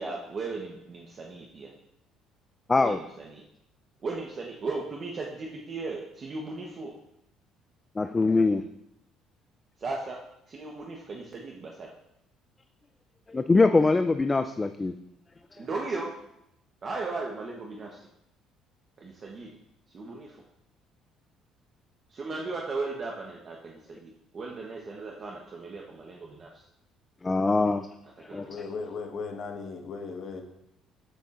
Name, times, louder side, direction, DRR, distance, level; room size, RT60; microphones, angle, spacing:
voice 1, 0.0-1.7 2.8-3.4 4.0-6.9 9.8-10.2 10.5-11.9 15.6-16.2 16.8-18.1 19.0-19.6 19.9-20.4 22.1-26.7 28.2-28.4, right 3 dB, 35° right, -1 dB, 1.0 m, -36 dB
voice 2, 8.0-8.6 13.3-14.9 27.2-27.9 28.2-28.5, left 3 dB, 20° left, 9 dB, 0.3 m, -23 dB
voice 3, 28.4-30.4, left 4 dB, 50° left, 2 dB, 1.4 m, -37 dB
13.0 x 6.7 x 2.5 m, 0.80 s
cardioid pair, 125°, 0 cm